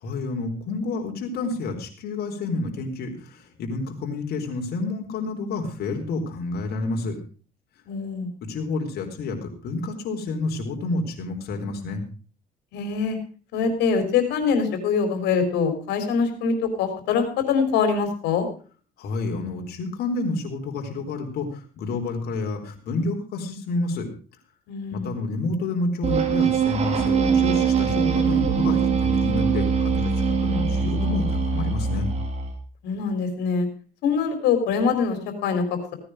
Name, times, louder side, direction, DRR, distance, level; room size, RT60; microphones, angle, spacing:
voice 1, 0.0-7.2 8.4-12.0 19.0-24.1 24.9-32.1, left 3 dB, 70° left, 3 dB, 4.2 m, -29 dB
voice 2, 7.9-8.3 12.7-13.2 13.5-18.5 24.7-25.1 32.8-33.7 34.0-35.6, left 5 dB, 85° left, 7 dB, 4.0 m, -23 dB
sound 1, 26.0-32.6, right 6 dB, 40° right, 3.7 m, -22 dB
17.5 x 9.9 x 5.0 m, 0.40 s
cardioid pair, 110°, 17 cm